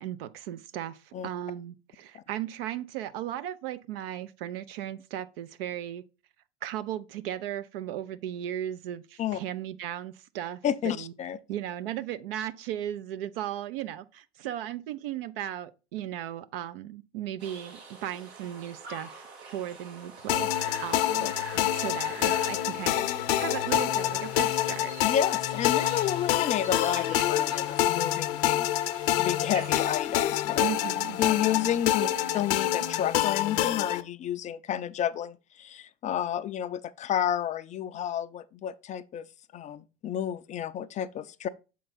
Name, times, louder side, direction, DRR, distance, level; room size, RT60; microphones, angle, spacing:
voice 1, 0.0-6.0 6.6-11.1 11.5-24.9 30.6-31.2 32.0-32.2, right 11 dB, 60° right, 0.5 m, -36 dB
voice 2, 10.6-11.4 21.2-21.7 25.0-28.7 28.9-30.7 31.2-32.1 32.3-39.3 39.5-41.5, left 10 dB, 25° left, 0.4 m, -31 dB
sound 1, 17.4-30.0, right 4 dB, 80° right, 2.2 m, -46 dB
sound 2, 20.3-34.0, left 13 dB, 60° left, 0.6 m, -27 dB
6.9 x 4.6 x 4.0 m
figure-of-eight pair, 80°, 32 cm